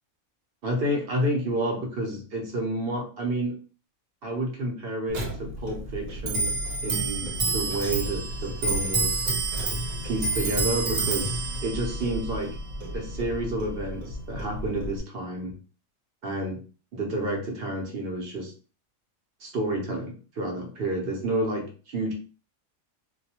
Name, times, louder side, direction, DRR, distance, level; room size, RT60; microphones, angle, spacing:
voice 1, 0.6-3.6 4.2-6.5 6.8-9.3 10.0-12.6 12.9-15.5 16.2-16.6 16.9-18.5 19.4-22.1, right 1 dB, 55° right, 1 dB, 0.7 m, -30 dB
Clock, 5.1-15.0, right 2 dB, 80° right, 1.1 m, -29 dB
2.3 x 2.1 x 2.7 m, 0.37 s
omnidirectional pair, 1.5 m